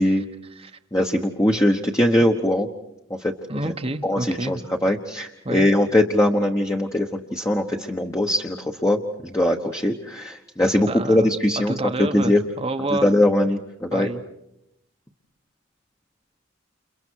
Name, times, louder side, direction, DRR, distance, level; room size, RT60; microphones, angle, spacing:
voice 1, 0.0-0.8 3.5-4.7 5.4-5.7 10.9-13.1 13.9-14.2, right 2 dB, 30° right, 6 dB, 1.0 m, -29 dB
voice 2, 0.9-2.7 3.2-3.3 4.0-11.7 12.1-12.4 13.0-14.1, left 1 dB, 15° left, 1 dB, 1.1 m, -21 dB
30.0 x 29.5 x 4.6 m, 0.83 s
head